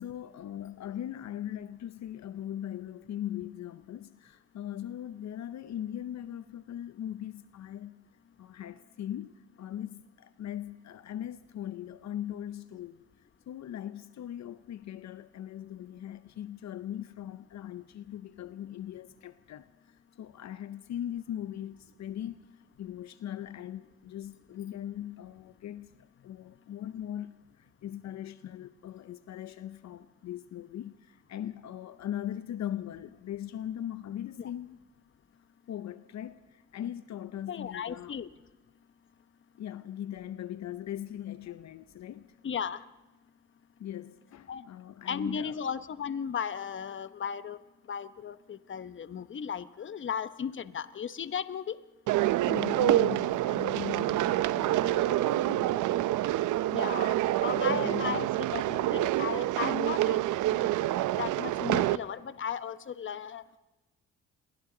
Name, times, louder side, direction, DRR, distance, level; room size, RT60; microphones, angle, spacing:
voice 1, 0.0-8.0 8.4-13.0 13.5-22.5 22.8-34.8 35.7-38.1 39.6-42.4 43.8-45.6 52.4-55.8 57.5-58.4, left 11 dB, 65° left, 0.9 m, -40 dB
voice 2, 37.5-38.3 42.4-42.8 44.5-44.6 45.1-47.6 47.9-51.8 56.7-57.1 57.4-58.3 58.5-60.2 60.5-60.9 61.2-63.4, left 7 dB, 40° left, 1.0 m, -35 dB
sound 1, 52.1-62.0, right 14 dB, 80° right, 0.7 m, -27 dB
29.0 x 23.0 x 3.9 m
cardioid pair, 90°, 30 cm